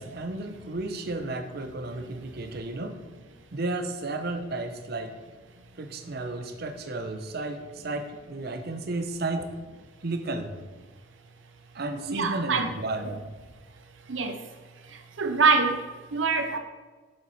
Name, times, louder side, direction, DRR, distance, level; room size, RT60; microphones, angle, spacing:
voice 1, 0.0-3.0 3.5-5.2 5.8-9.4 10.0-10.5 11.7-13.2, right 2 dB, 55° right, 7 dB, 0.8 m, -33 dB
voice 2, 12.1-12.7 14.1-14.3 15.2-15.8 16.1-16.6, right 4 dB, 85° right, 6 dB, 0.7 m, -24 dB
7.6 x 7.4 x 4.2 m, 1.4 s
head